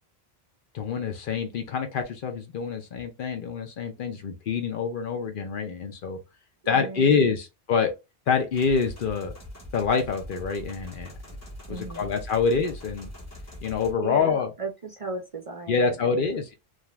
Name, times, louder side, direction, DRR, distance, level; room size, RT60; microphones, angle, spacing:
voice 1, 0.7-6.2 6.7-7.9 8.3-9.3 9.7-11.1 11.7-13.1 13.6-14.5 15.7-16.5, left 5 dB, 60° left, 0.7 m, -26 dB
voice 2, 6.7-7.3 11.7-12.1 14.0-16.3, right 3 dB, 45° right, 0.5 m, -36 dB
sound 1, 8.5-13.9, equal, 15° left, 0.8 m, -42 dB
2.5 x 2.3 x 3.0 m
omnidirectional pair, 1.1 m